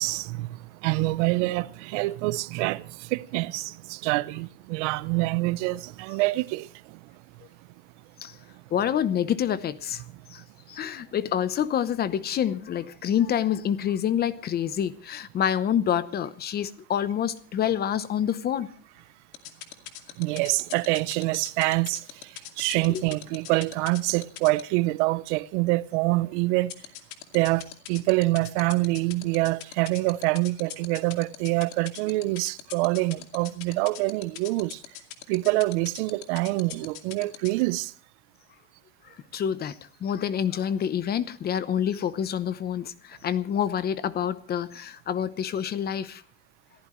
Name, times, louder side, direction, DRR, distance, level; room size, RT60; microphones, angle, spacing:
voice 1, 0.0-7.0 20.2-26.7 27.3-34.8 35.3-37.9, right 21 dB, 70° right, 0.9 m, -26 dB
voice 2, 8.7-10.0 10.7-18.7 22.9-23.0 39.3-39.7 40.0-42.9 43.2-46.2, left 9 dB, 25° left, 0.8 m, -27 dB
sound 1, 19.3-24.6 26.7-37.6, left 15 dB, 60° left, 2.4 m, -39 dB
28.0 x 14.5 x 3.2 m
cardioid pair, 155°, 36 cm